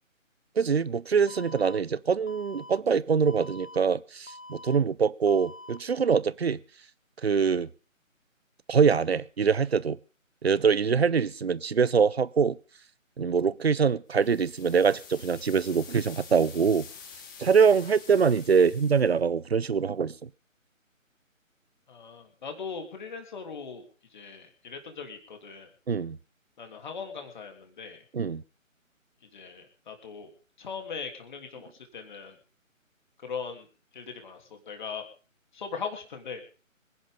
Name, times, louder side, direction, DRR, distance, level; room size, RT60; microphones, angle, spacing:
voice 1, 0.6-6.6 7.2-7.7 8.7-10.0 10.4-12.6 13.2-16.9 17.4-20.3 25.9-26.2 28.1-28.4, right 6 dB, 50° right, 0.7 m, -24 dB
Alarm, 1.3-1.8 2.3-2.8 3.3-3.8 4.3-4.8 5.3-5.8, left 2 dB, 70° left, 1.4 m, -45 dB
sound 1, 14.1-19.2, left 6 dB, 15° left, 1.5 m, -48 dB
voice 2, 21.9-25.7 26.6-28.0 29.2-32.4 33.2-33.7 33.9-35.1 35.5-36.4, left 5 dB, 35° left, 3.2 m, -40 dB
25.5 x 11.0 x 3.7 m
figure-of-eight pair, 150°, 41 cm